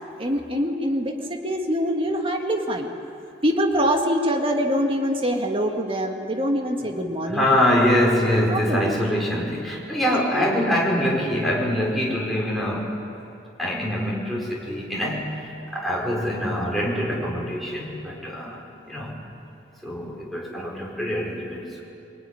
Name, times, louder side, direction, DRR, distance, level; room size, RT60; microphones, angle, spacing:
voice 1, 0.2-2.9 3.4-7.5 8.5-9.0 10.1-10.5, equal, 30° right, 2 dB, 2.0 m, -24 dB
voice 2, 7.3-12.9 13.6-15.3 15.7-18.6 18.9-19.1 19.8-21.8, equal, ahead, -4 dB, 5.4 m, -24 dB
25.0 x 21.0 x 10.0 m, 2.7 s
head